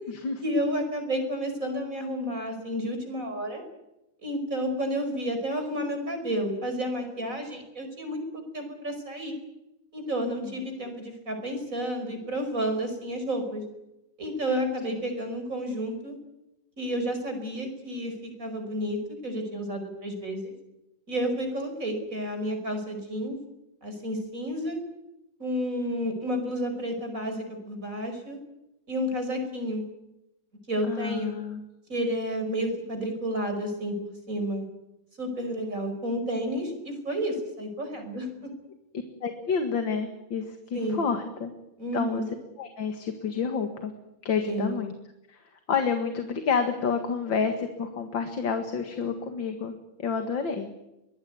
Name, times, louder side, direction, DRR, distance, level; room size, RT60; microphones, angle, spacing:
voice 1, 0.4-3.6 4.2-8.2 8.5-9.3 9.9-13.6 14.2-16.2 16.8-20.5 21.1-23.4 23.8-24.8 25.4-28.4 28.9-29.8 30.7-31.3 31.9-34.0 34.3-34.7 35.2-38.5 40.7-41.1 41.8-42.3 44.4-44.8, equal, 40° right, 6 dB, 5.6 m, -31 dB
voice 2, 25.8-26.2 30.9-31.6 39.2-41.5 41.9-42.2 42.6-43.9 44.2-44.9 45.3-45.4 45.7-50.7, left 5 dB, 75° left, 6 dB, 2.6 m, -29 dB
23.5 x 19.5 x 9.6 m, 0.92 s
omnidirectional pair, 2.1 m